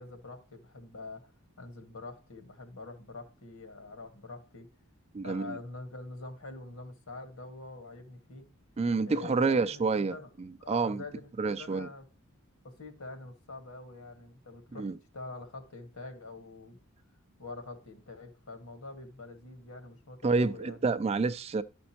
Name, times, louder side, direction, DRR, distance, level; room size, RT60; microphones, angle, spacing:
voice 1, 0.0-1.3 1.6-4.7 5.2-8.5 9.0-10.3 10.6-12.1 12.6-14.9 15.1-16.8 17.4-20.8, left 3 dB, 80° left, 1.7 m, -45 dB
voice 2, 5.1-5.6 8.8-11.0 11.4-11.9 14.8-15.0 20.2-21.6, right 4 dB, 30° right, 0.3 m, -29 dB
12.0 x 5.2 x 2.9 m
head